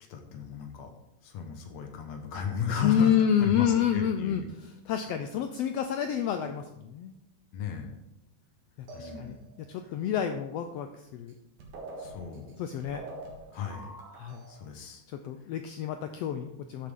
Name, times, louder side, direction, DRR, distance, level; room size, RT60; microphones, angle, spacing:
voice 1, 0.1-0.9 1.2-4.5 7.5-8.0 8.9-9.5 9.8-10.0 12.0-12.6 13.5-13.9 14.5-15.0 15.4-15.5, left 6 dB, 65° left, 4 dB, 2.5 m, -35 dB
voice 2, 2.8-7.1 8.8-9.4 9.7-11.3 12.6-13.0 14.2-14.4 15.2-16.9, left 9 dB, 85° left, 7 dB, 1.4 m, -28 dB
sound 1, 8.9-9.7 11.3-11.4 11.6-14.6, right 2 dB, 80° right, 3.2 m, -45 dB
12.5 x 7.5 x 3.7 m, 0.89 s
omnidirectional pair, 3.4 m